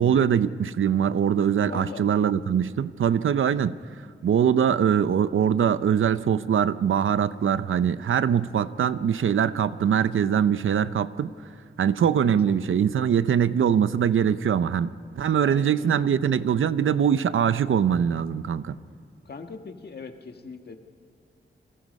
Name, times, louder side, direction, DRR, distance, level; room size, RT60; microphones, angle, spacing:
voice 1, 0.0-3.8 4.2-11.3 11.8-18.8, right 8 dB, 90° right, 14 dB, 0.7 m, -22 dB
voice 2, 1.6-2.0 12.4-12.7 15.4-16.0 19.2-20.8, left 4 dB, 55° left, 5 dB, 1.7 m, -41 dB
30.0 x 22.5 x 5.4 m, 2.3 s
wide cardioid pair, 145°, 20 cm